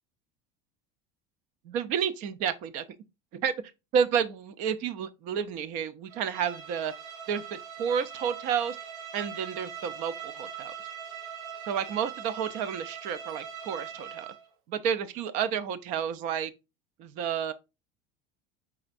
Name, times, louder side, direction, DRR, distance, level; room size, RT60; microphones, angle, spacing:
voice 1, 1.7-2.8 3.3-3.5 3.9-6.9 7.3-8.8 9.1-10.7 11.7-14.3 14.7-16.5 17.0-17.5, right 7 dB, 45° right, 0.5 m, -30 dB
Bowed string instrument, 6.1-14.5, right 7 dB, 85° right, 1.1 m, -41 dB
5.0 x 4.3 x 2.4 m
cardioid pair, 165°, 17 cm